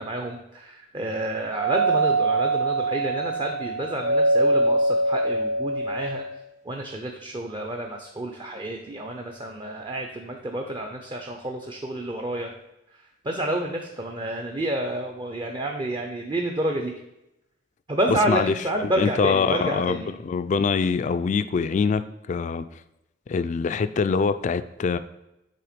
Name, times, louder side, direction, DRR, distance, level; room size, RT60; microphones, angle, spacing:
voice 1, 0.0-6.2 6.6-12.5 12.9-16.9 17.9-20.1, right 1 dB, 25° right, 3 dB, 0.5 m, -29 dB
Doorbell, 1.5-6.4, right 2 dB, 75° right, 2.4 m, -23 dB
voice 2, 18.3-22.0 22.3-22.7 23.3-25.0, left 5 dB, 40° left, 12 dB, 0.3 m, -24 dB
7.6 x 3.5 x 5.1 m, 0.89 s
head